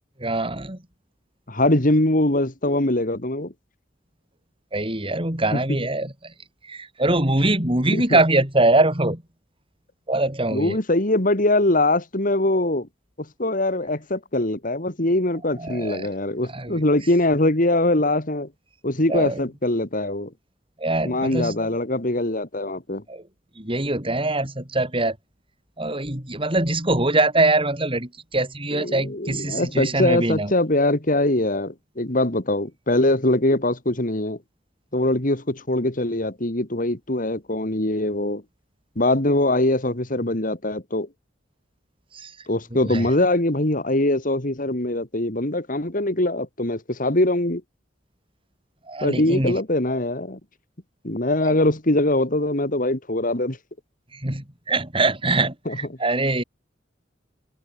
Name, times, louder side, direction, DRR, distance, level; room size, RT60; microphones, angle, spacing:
voice 1, 0.2-0.8 4.7-6.3 6.6-9.2 10.1-10.8 15.6-16.1 16.5-16.8 19.1-19.4 20.8-21.7 23.1-23.2 23.6-25.2 25.8-30.5 42.1-42.3 42.8-43.1 48.9-49.6 51.4-51.6 54.1-56.4, right 2 dB, 30° right, 5.3 m, -23 dB
voice 2, 1.5-3.5 5.5-5.6 7.9-8.2 10.5-12.9 13.4-18.5 18.8-20.3 21.0-23.0 28.7-34.4 34.9-38.4 39.0-41.1 42.5-47.6 49.0-50.4 51.0-53.6 55.7-55.8, left 1 dB, 45° left, 2.8 m, -22 dB
head